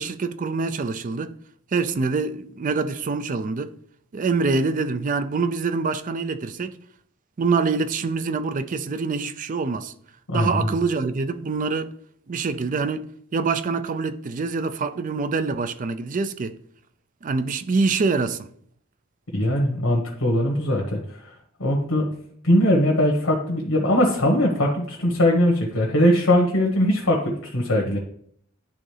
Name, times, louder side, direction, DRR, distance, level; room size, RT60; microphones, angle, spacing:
voice 1, 0.0-1.3 1.7-3.7 4.1-6.8 7.4-9.9 10.3-11.9 12.3-16.6 17.2-18.5, right 4 dB, 40° right, 0.4 m, -25 dB
voice 2, 10.3-10.7 19.3-21.2 21.6-22.1 22.4-27.2 27.5-28.0, left 1 dB, 80° left, 1.3 m, -20 dB
11.0 x 3.7 x 3.3 m
head